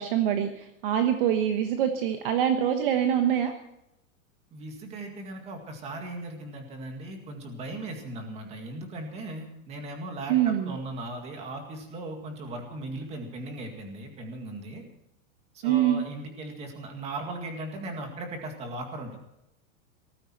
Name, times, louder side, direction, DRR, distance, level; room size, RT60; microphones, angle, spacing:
voice 1, 0.0-3.5 10.3-10.7 15.6-16.0, right 10 dB, 40° right, 6 dB, 1.1 m, -25 dB
voice 2, 4.5-14.8 15.5-19.2, right 2 dB, 15° right, 4 dB, 2.0 m, -38 dB
18.0 x 14.5 x 4.5 m, 0.84 s
supercardioid pair, 180°, 41 cm